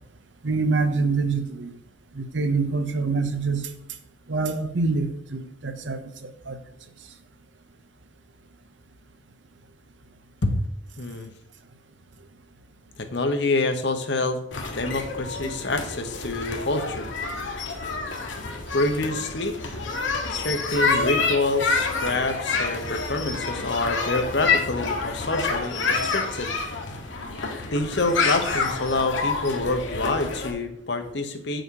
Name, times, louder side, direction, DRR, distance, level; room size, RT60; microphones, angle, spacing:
voice 1, 0.4-1.8 2.1-3.7 4.3-6.6, right 4 dB, 80° right, 8 dB, 0.9 m, -26 dB
voice 2, 11.0-11.3 13.0-14.4 14.7-17.1 18.7-19.6 20.3-26.5 27.7-31.6, left 2 dB, 65° left, 7 dB, 1.1 m, -26 dB
sound 1, 14.5-30.5, left 4 dB, 90° left, 1.5 m, -28 dB
7.9 x 6.4 x 4.7 m, 0.73 s
head